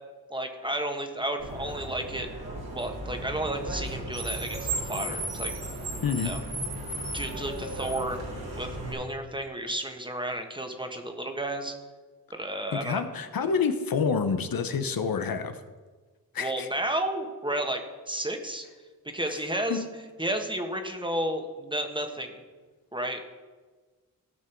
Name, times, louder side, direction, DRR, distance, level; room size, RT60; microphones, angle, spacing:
voice 1, 0.3-2.3 2.7-5.5 6.2-6.4 7.1-8.2 8.5-11.7 12.3-13.0 16.4-18.6 19.0-19.8 20.2-22.3 22.9-23.3, right 1 dB, 10° right, 4 dB, 1.5 m, -32 dB
Car, 1.4-8.9, right 1 dB, 80° right, 3.4 m, -35 dB
voice 2, 6.0-6.4 12.7-15.6 16.3-16.7 19.3-19.4 19.7-19.9, left 5 dB, 65° left, 9 dB, 1.0 m, -28 dB
17.0 x 6.2 x 4.6 m, 1.4 s
cardioid pair, 70°, 38 cm